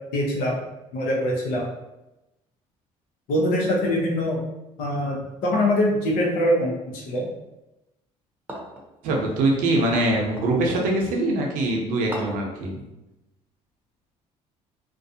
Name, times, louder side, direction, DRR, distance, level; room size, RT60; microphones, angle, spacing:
voice 1, 0.1-0.5 0.9-1.7 3.3-4.4 4.8-7.3, left 1 dB, 80° left, -2 dB, 0.8 m, -23 dB
sound 1, 8.5-8.9 10.4-10.6 12.1-12.5, equal, 15° right, 0.8 m, -36 dB
voice 2, 9.0-12.8, right 2 dB, 80° right, 0 dB, 0.6 m, -23 dB
2.4 x 2.2 x 2.6 m, 0.96 s
supercardioid pair, 70°, 14 cm